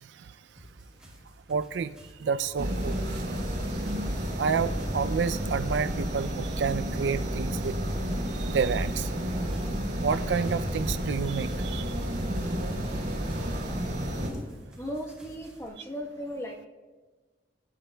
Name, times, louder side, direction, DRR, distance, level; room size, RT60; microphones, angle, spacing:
sound 1, 0.6-15.7, equal, 5° right, 2.6 m, -53 dB
voice 1, 1.5-1.9 2.2-3.0 4.4-7.8 8.4-9.1 10.0-11.9, right 6 dB, 80° right, 13 dB, 0.4 m, -29 dB
sound 2, 2.6-14.3, equal, 65° right, 3.2 m, -31 dB
voice 2, 14.8-16.6, equal, 15° left, 1 dB, 1.0 m, -36 dB
22.0 x 10.0 x 2.2 m, 1.3 s
head